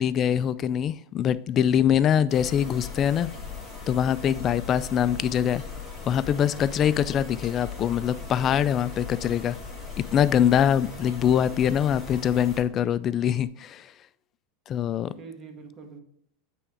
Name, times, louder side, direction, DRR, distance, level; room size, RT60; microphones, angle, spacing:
voice 1, 0.0-3.3 3.9-5.6 6.1-9.6 10.0-13.9 14.7-15.1, left 9 dB, 35° left, 16 dB, 0.3 m, -23 dB
sound 1, 2.3-12.6, left 5 dB, 5° left, 2.3 m, -39 dB
voice 2, 14.7-16.0, right 5 dB, 30° right, 3 dB, 1.4 m, -45 dB
8.4 x 3.6 x 3.5 m, 0.71 s
supercardioid pair, 125°, 0 cm